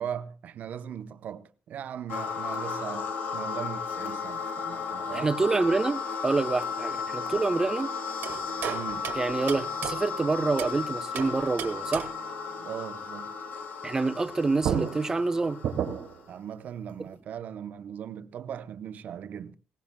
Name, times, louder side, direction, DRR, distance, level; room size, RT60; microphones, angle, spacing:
voice 1, 0.0-5.3 8.7-9.1 12.5-13.3 16.3-19.5, right 9 dB, 55° right, 0.8 m, -39 dB
sound 1, 2.1-16.2, left 5 dB, 60° left, 1.7 m, -34 dB
voice 2, 5.1-7.9 9.1-12.1 13.8-15.6, right 3 dB, 15° right, 0.7 m, -27 dB
sound 2, 8.2-10.8 11.1-12.3 14.2-14.3 14.6-16.3, right 9 dB, 90° right, 1.7 m, -34 dB
20.0 x 17.5 x 2.3 m
cardioid pair, 175°, 3 cm